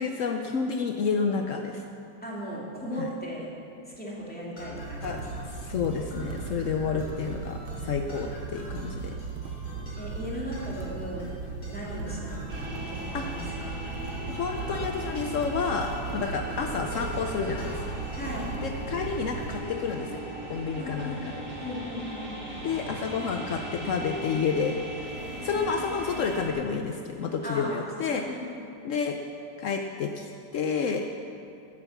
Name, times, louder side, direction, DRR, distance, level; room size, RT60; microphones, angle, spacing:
voice 1, 0.0-1.9 3.0-3.1 5.0-5.2 5.5-9.2 13.1-13.2 14.3-18.0 18.6-21.3 22.6-24.8 25.4-28.2 28.8-29.2 29.6-31.0, left 5 dB, 70° left, 4 dB, 0.7 m, -30 dB
voice 2, 2.2-3.5 3.9-5.2 10.0-11.3 11.7-13.7 18.1-18.5 20.8-21.2 21.6-22.4 25.4-25.6 27.4-28.5, equal, 5° left, -5 dB, 2.5 m, -37 dB
sound 1, 4.6-18.6, right 1 dB, 50° left, 4.6 m, -42 dB
sound 2, 4.7-19.6, right 5 dB, 85° right, 1.8 m, -38 dB
sound 3, 12.5-26.5, right 1 dB, 40° right, 2.8 m, -38 dB
12.5 x 9.7 x 7.2 m, 2.6 s
omnidirectional pair, 2.1 m